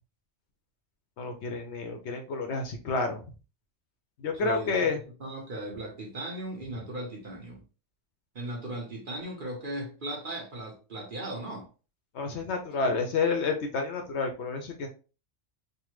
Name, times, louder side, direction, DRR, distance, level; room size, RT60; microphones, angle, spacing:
voice 1, 1.2-3.2 4.2-5.0 12.1-14.9, left 4 dB, 65° left, 0.8 m, -29 dB
voice 2, 4.3-4.9 5.2-7.6 8.3-11.7, right 1 dB, 45° right, 1.0 m, -37 dB
3.3 x 2.1 x 3.0 m
omnidirectional pair, 1.3 m